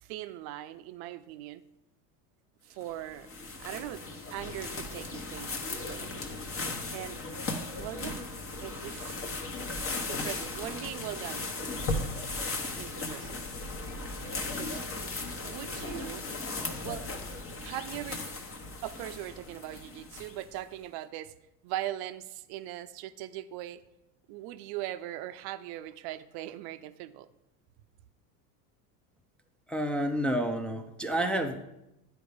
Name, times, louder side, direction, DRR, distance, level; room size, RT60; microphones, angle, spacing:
voice 1, 0.0-1.6 2.6-3.3 3.6-4.0 4.3-6.1 6.9-7.2 7.8-8.2 8.6-9.2 10.1-11.9 12.7-13.4 14.5-14.9 15.4-16.3 16.8-17.2 17.6-18.2 18.8-21.3 21.6-23.8 24.3-27.3, right 14 dB, 55° right, 12 dB, 0.6 m, -40 dB
sound 1, 2.8-20.6, left 3 dB, 30° left, 1.1 m, -37 dB
voice 2, 29.7-31.6, right 1 dB, ahead, 4 dB, 0.4 m, -29 dB
9.2 x 4.6 x 5.1 m, 0.90 s
hypercardioid pair, 85°, 48 cm